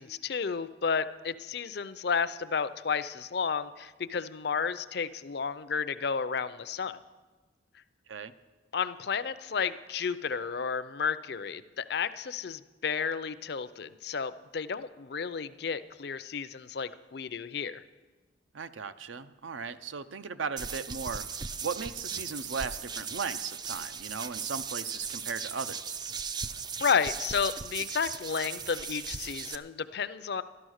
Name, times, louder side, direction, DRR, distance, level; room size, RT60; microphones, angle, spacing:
voice 1, 0.0-7.0 8.7-17.8 26.8-30.4, left 6 dB, 55° left, 14 dB, 0.5 m, -32 dB
voice 2, 18.5-26.0, right 5 dB, 85° right, 11 dB, 0.6 m, -37 dB
sound 1, 20.6-29.5, right 6 dB, 20° right, 0.3 m, -37 dB
12.5 x 12.0 x 6.4 m, 1.3 s
head